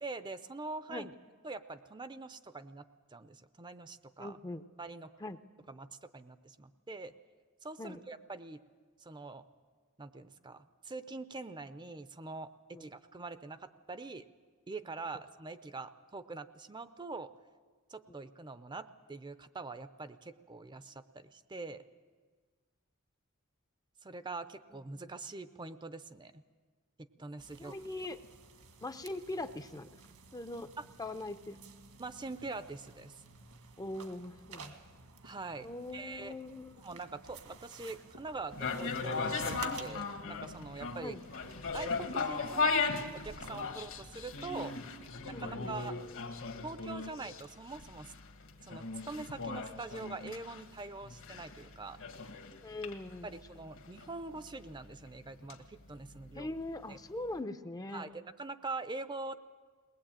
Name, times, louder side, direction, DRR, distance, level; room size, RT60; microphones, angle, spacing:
voice 1, 0.0-1.1 1.4-2.8 3.1-4.4 4.8-5.1 5.7-7.1 7.6-8.6 9.0-9.4 10.0-14.3 14.7-17.3 17.9-21.8 24.0-26.4 27.0-27.8 30.8-30.9 32.0-33.2 35.2-36.3 36.8-41.2 41.7-42.7 43.1-44.7 45.2-45.9 46.6-48.1 48.6-52.0 53.2-56.5 56.9-57.0 57.9-59.4, right 3 dB, 20° right, 12 dB, 0.6 m, -44 dB
voice 2, 4.2-4.6 5.2-5.4 7.8-8.0 12.7-12.8 27.6-28.2 28.8-29.9 30.3-30.7 31.0-31.6 33.8-34.8 35.6-36.8 41.0-41.2 45.3-45.7 52.6-53.3 56.3-58.1, left 2 dB, 15° left, 10 dB, 0.6 m, -41 dB
sound 1, 27.4-45.1, right 4 dB, 75° right, 1.9 m, -54 dB
sound 2, 38.5-56.6 57.0-57.1, left 4 dB, 65° left, 1.6 m, -38 dB
21.5 x 19.5 x 8.9 m, 1.5 s
head